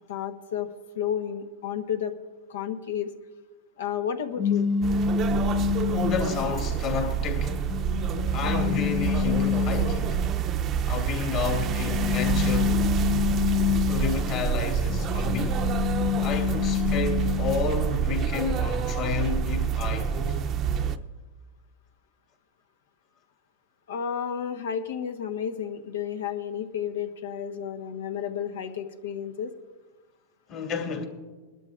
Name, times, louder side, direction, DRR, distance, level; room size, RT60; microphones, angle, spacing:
voice 1, 0.1-0.7 0.9-2.1 2.5-3.1 3.8-4.7 23.9-29.5, left 8 dB, 85° left, 1.1 m, -31 dB
sound 1, 4.4-6.6 7.2-10.3 11.5-14.4 14.9-17.8, left 9 dB, 20° left, 0.6 m, -27 dB
sound 2, 4.8-21.0, right 8 dB, 30° right, 0.6 m, -27 dB
voice 2, 5.9-7.6 8.3-10.2 10.9-12.8 13.9-15.6 16.2-20.4 30.5-31.0, left 5 dB, 45° left, 2.5 m, -31 dB
21.0 x 12.0 x 2.5 m
supercardioid pair, 135°, 0 cm